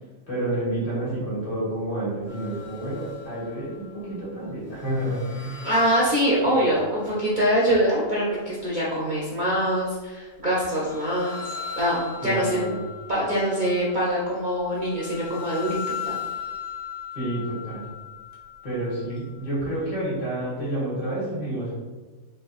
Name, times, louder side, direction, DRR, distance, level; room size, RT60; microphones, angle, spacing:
voice 1, 0.3-5.6 6.6-6.7 12.2-12.8 17.1-17.9 18.6-21.7, right 1 dB, 60° left, -8 dB, 1.7 m, -29 dB
sound 1, 2.3-4.4 4.7-7.9 10.5-19.9, left 7 dB, 45° left, 0.4 m, -39 dB
voice 2, 5.6-11.4 11.8-12.6 13.1-16.2, equal, 55° right, -7 dB, 0.5 m, -24 dB
3.6 x 2.6 x 2.4 m, 1.3 s
omnidirectional pair, 1.4 m